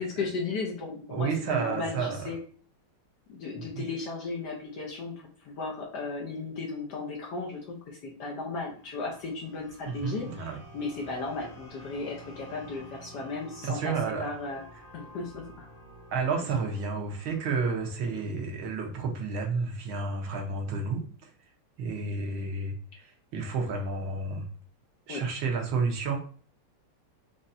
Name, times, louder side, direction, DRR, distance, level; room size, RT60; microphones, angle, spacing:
voice 1, 0.0-2.4 3.3-13.9 14.2-14.6 14.9-15.7 25.1-25.2, left 3 dB, 60° left, -1 dB, 1.2 m, -35 dB
voice 2, 1.1-2.3 3.7-3.8 9.9-10.6 13.6-14.3 16.1-21.3 21.8-24.4 25.1-26.2, right 4 dB, 70° right, 2 dB, 1.6 m, -31 dB
sound 1, 8.7-18.0, right 1 dB, 30° left, 1.2 m, -50 dB
5.4 x 3.1 x 2.6 m, 0.43 s
omnidirectional pair, 2.4 m